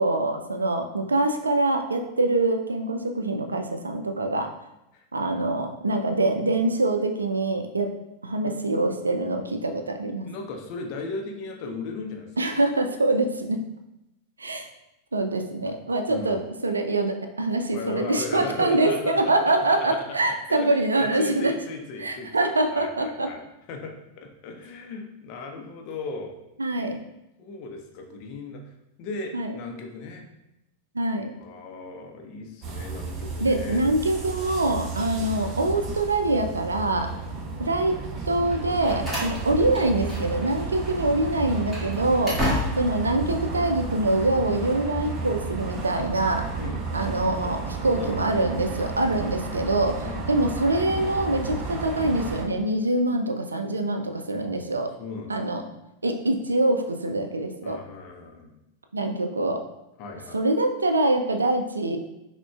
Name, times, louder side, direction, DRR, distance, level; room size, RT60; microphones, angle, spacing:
voice 1, 0.0-4.5 5.1-7.9 8.2-10.3 12.4-13.6 14.4-14.7 15.1-21.5 22.0-23.3 26.6-27.0 29.3-29.6 30.9-31.3 33.4-37.1 37.6-37.9 38.3-42.4 42.8-46.4 46.9-50.0 50.3-54.9 55.3-55.6 56.0-57.8 58.9-59.6 60.3-62.0, right 2 dB, 75° right, 5 dB, 0.3 m, -24 dB
voice 2, 10.2-12.6 16.1-16.4 17.7-20.2 20.5-23.4 23.7-26.3 27.4-28.7 29.0-30.2 31.4-33.9 35.1-35.4 37.3-37.6 39.2-39.4 42.4-42.6 46.6-46.8 47.9-48.3 50.0-50.2 54.4-55.5 57.6-58.5 60.0-60.4, left 3 dB, 45° left, 2 dB, 0.6 m, -37 dB
sound 1, 32.6-52.5, right 4 dB, 30° right, 0.6 m, -33 dB
Slam, 38.5-40.5 40.8-40.9 41.5-43.0, left 1 dB, 5° right, 1.4 m, -31 dB
5.9 x 2.2 x 2.3 m, 0.89 s
figure-of-eight pair, 90°, 0 cm